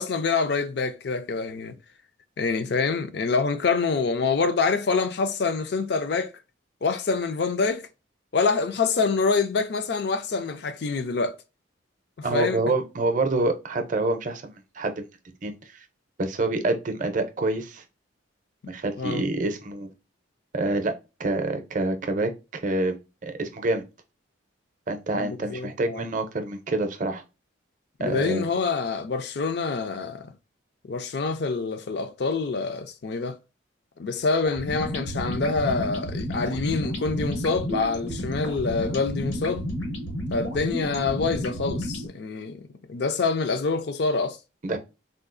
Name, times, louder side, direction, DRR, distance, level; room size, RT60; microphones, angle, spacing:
voice 1, 0.0-1.7 2.4-6.3 6.8-7.9 8.3-11.4 12.2-12.6 19.0-19.2 25.1-26.0 28.0-30.3 30.8-33.4 34.0-39.7 40.3-44.4, left 4 dB, 55° left, 0.4 m, -26 dB
voice 2, 12.2-15.1 15.4-15.8 16.2-17.8 18.7-19.9 20.5-20.9 21.2-23.0 23.2-23.8 24.9-27.2 28.0-28.5 44.6-44.8, right 2 dB, 40° right, 0.5 m, -27 dB
sound 1, 34.4-42.1, equal, 80° left, 1.1 m, -31 dB
3.7 x 2.4 x 2.5 m
head